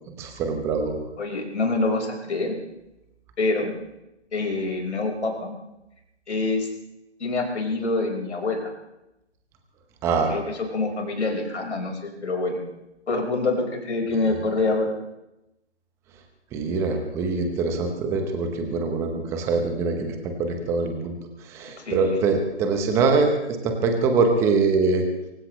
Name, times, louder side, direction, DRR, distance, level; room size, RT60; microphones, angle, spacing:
voice 1, 0.1-1.0 10.0-10.3 16.5-25.1, right 4 dB, 10° right, 5 dB, 0.9 m, -24 dB
voice 2, 1.2-2.6 3.4-3.7 4.3-5.5 6.3-6.7 7.2-8.7 10.3-10.4 10.7-12.6 13.1-14.9 21.8-22.1, left 3 dB, 70° left, 2 dB, 5.1 m, -26 dB
24.0 x 16.5 x 3.2 m, 0.93 s
figure-of-eight pair, 150°, 36 cm